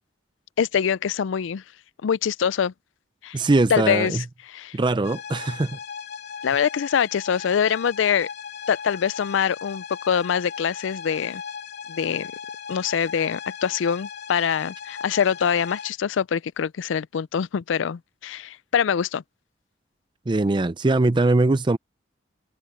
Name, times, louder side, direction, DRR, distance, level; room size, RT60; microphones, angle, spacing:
voice 1, 0.6-1.6 2.0-2.7 3.2-3.4 3.7-4.8 6.4-8.3 8.7-11.4 11.9-12.3 12.7-19.2, left 7 dB, 75° left, 0.4 m, -24 dB
voice 2, 3.3-4.2 4.7-5.7 20.3-21.8, right 2 dB, 25° right, 0.5 m, -21 dB
sound 1, 5.0-15.9, left 7 dB, 55° left, 3.2 m, -37 dB
open air
head